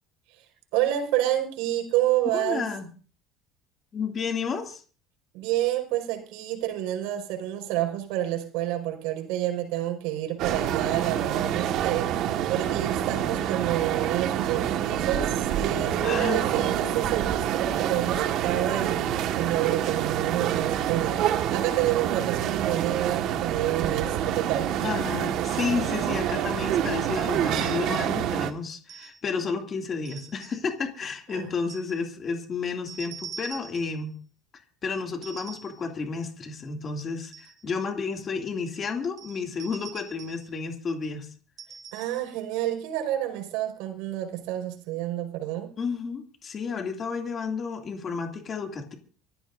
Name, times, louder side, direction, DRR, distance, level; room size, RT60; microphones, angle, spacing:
voice 1, 0.7-2.7 5.3-24.7 31.3-31.5 41.9-45.7, right 13 dB, 75° right, 4 dB, 4.9 m, -29 dB
voice 2, 2.3-2.9 3.9-4.8 16.0-16.7 24.8-34.2 34.5-41.3 45.8-48.9, left 5 dB, 25° left, 3 dB, 2.5 m, -31 dB
sound 1, 10.4-28.5, right 10 dB, 50° right, 1.6 m, -27 dB
sound 2, 28.9-29.3 30.0-30.7 31.7-32.0 32.9-34.0 35.2-35.9 37.0-37.6 39.2-40.5 41.6-42.3, right 6 dB, 35° right, 1.8 m, -44 dB
25.0 x 15.0 x 2.6 m, 0.38 s
cardioid pair, 170°, 0 cm